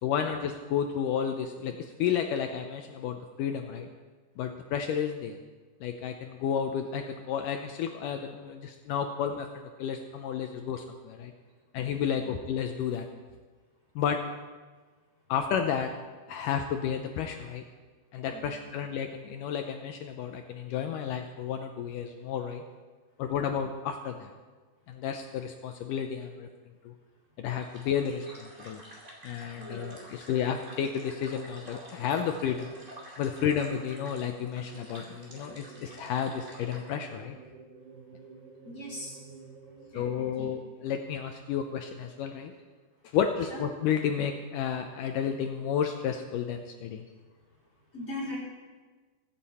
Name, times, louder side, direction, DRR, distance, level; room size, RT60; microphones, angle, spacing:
voice 1, 0.0-3.9 4.4-5.4 5.8-11.3 11.7-13.1 14.0-14.2 15.3-15.9 16.3-17.6 18.1-22.6 23.2-24.3 24.9-26.5 26.8-26.9 27.4-28.8 29.2-32.7 33.2-37.4 39.9-42.5 43.1-47.0, left 8 dB, 80° left, 5 dB, 1.9 m, -32 dB
voice 2, 18.3-18.7 29.6-29.9 38.6-39.2 39.9-40.5 43.5-43.6 47.9-48.4, left 1 dB, 20° left, -5 dB, 3.9 m, -40 dB
sound 1, 27.6-36.9, equal, 20° right, 2.4 m, -49 dB
sound 2, 33.5-40.4, right 5 dB, 65° right, 2.1 m, -50 dB
23.0 x 8.9 x 4.2 m, 1.4 s
omnidirectional pair, 4.6 m